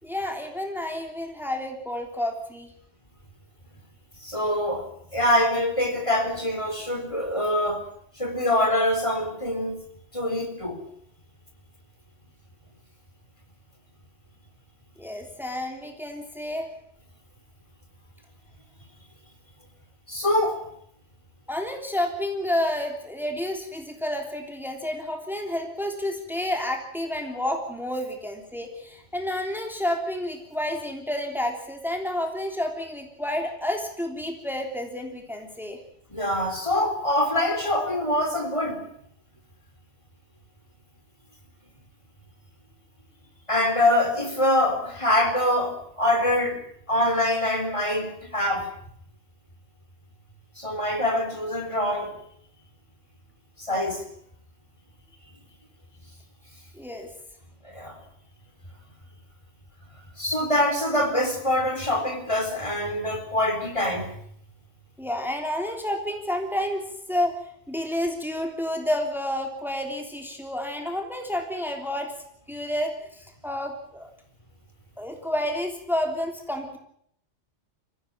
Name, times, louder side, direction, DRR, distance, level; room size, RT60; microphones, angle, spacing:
voice 1, 0.0-2.7 15.0-16.7 21.5-35.8 56.7-57.1 65.0-72.2 72.5-74.1 75.0-76.8, left 1 dB, ahead, 3 dB, 3.3 m, -30 dB
voice 2, 4.2-4.9 5.1-7.8 8.2-9.8 10.1-10.8 20.1-20.6 36.1-38.8 43.5-46.6 46.9-48.7 50.6-52.1 53.6-54.0 57.6-58.0 60.2-64.1, left 1 dB, 25° left, 5 dB, 4.1 m, -24 dB
23.5 x 16.5 x 8.9 m, 0.69 s
omnidirectional pair, 1.2 m